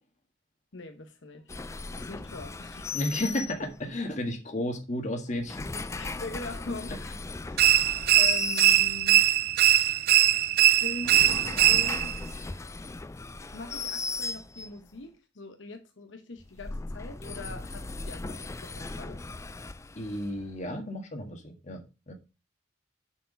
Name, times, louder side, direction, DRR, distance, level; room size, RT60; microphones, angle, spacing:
voice 1, 0.7-1.6 1.9-3.0 5.9-7.1 7.4-7.6 7.9-9.3 10.8-12.2 13.5-19.2 20.0-20.1, left 3 dB, 80° left, 1.0 m, -42 dB
sound 1, 1.5-4.0 5.3-9.3 10.8-14.9 16.4-20.6, left 3 dB, 15° left, 0.3 m, -37 dB
voice 2, 2.9-5.7 19.9-21.8 22.1-22.2, left 1 dB, 40° left, 1.6 m, -32 dB
sound 2, 7.6-12.2, right 13 dB, 55° right, 0.4 m, -21 dB
7.3 x 4.7 x 5.2 m
head